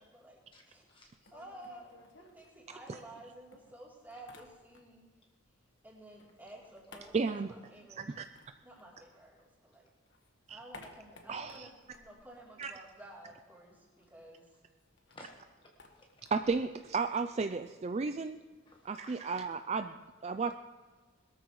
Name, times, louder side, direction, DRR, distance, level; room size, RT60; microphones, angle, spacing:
voice 1, 0.0-0.8 1.3-1.9 2.2-5.1 5.8-8.0 8.6-9.9 10.5-14.5, right 1 dB, 10° right, -5 dB, 3.2 m, -52 dB
voice 2, 0.5-1.3 4.1-4.2 9.4-9.5 15.1-15.3 15.6-16.3 18.7-19.2, left 1 dB, 25° left, 1 dB, 1.3 m, -57 dB
sound 1, 1.0-3.2 3.5-5.1 5.4-9.6 9.9-13.2 13.5-13.6 13.8-19.6, left 3 dB, 60° left, 1.5 m, -59 dB
voice 3, 7.1-7.5 8.0-8.3 10.5-10.6 11.3-11.7 12.6-12.7 16.3-18.4 18.8-20.5, right 4 dB, 30° right, 9 dB, 0.3 m, -33 dB
21.0 x 13.0 x 3.1 m, 1.4 s
head